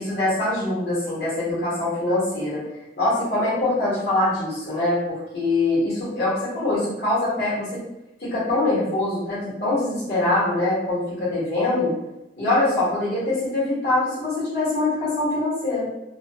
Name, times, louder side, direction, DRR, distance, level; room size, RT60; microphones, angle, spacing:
voice 1, 0.0-2.6 3.0-7.8 8.2-11.9 12.4-15.9, left 2 dB, 65° left, -9 dB, 1.1 m, -23 dB
2.4 x 2.2 x 2.6 m, 0.92 s
head